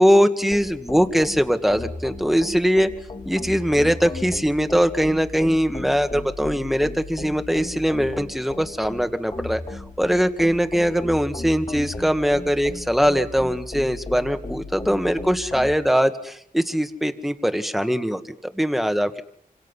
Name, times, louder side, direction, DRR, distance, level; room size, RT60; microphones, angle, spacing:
voice 1, 0.0-2.9 3.3-19.2, equal, ahead, 8 dB, 1.8 m, -21 dB
sound 1, 0.5-15.7, left 2 dB, 40° left, 2.5 m, -36 dB
28.5 x 26.0 x 5.6 m, 0.69 s
wide cardioid pair, 70°, 15 cm